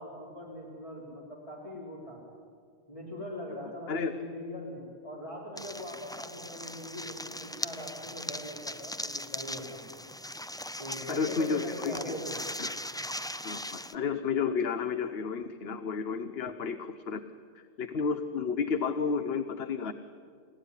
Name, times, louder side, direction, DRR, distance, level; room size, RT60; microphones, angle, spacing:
voice 1, 0.0-2.2 2.9-9.9 10.8-12.4, left 1 dB, 30° left, -5 dB, 4.3 m, -41 dB
sound 1, 5.6-13.9, left 1 dB, 5° left, 0.3 m, -39 dB
voice 2, 11.1-12.1 12.6-12.7 13.4-17.2 17.5-19.9, left 5 dB, 65° left, 10 dB, 1.2 m, -31 dB
29.5 x 16.5 x 9.9 m, 2.1 s
omnidirectional pair, 1.1 m